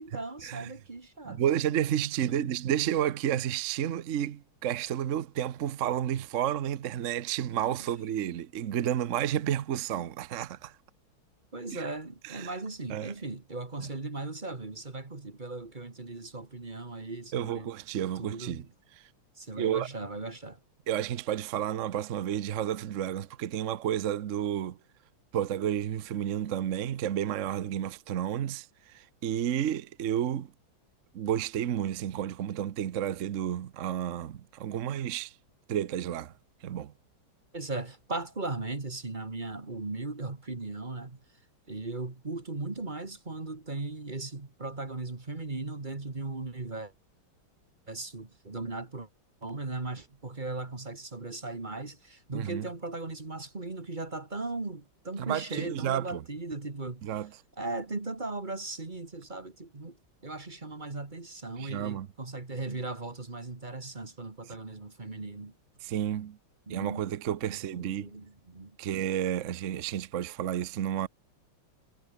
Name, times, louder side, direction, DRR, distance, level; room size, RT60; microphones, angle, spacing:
voice 1, 0.0-1.4 2.3-2.5 7.8-7.9 11.5-17.7 18.2-18.7 19.4-20.6 37.5-41.2 41.7-46.9 47.9-49.1 49.4-57.0 57.6-60.0 60.2-65.5 66.7-67.1 67.5-68.7, right 3 dB, 25° right, 2.0 m, -38 dB
voice 2, 1.2-10.7 11.7-11.9 12.2-12.6 12.9-13.1 17.3-18.6 19.6-19.9 20.9-24.8 25.3-28.7 28.9-30.5 31.1-35.3 35.7-36.3 36.6-36.9 52.3-52.7 55.2-56.2 57.0-57.3 61.6-62.1 65.8-66.4 66.7-68.1 68.8-71.1, right 10 dB, 55° right, 0.9 m, -31 dB
omnidirectional pair, 2.2 m